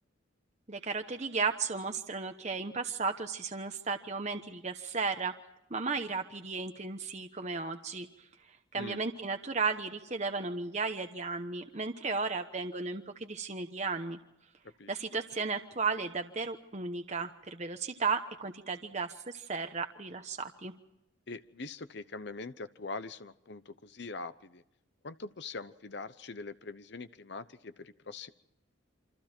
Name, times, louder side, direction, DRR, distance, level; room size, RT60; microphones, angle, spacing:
voice 1, 0.7-5.3 5.7-8.1 8.7-14.2 14.9-20.7, right 4 dB, 35° right, 6 dB, 1.0 m, -34 dB
voice 2, 21.3-24.6 25.0-28.3, left 3 dB, 55° left, 12 dB, 0.8 m, -43 dB
28.5 x 26.0 x 4.4 m, 0.88 s
head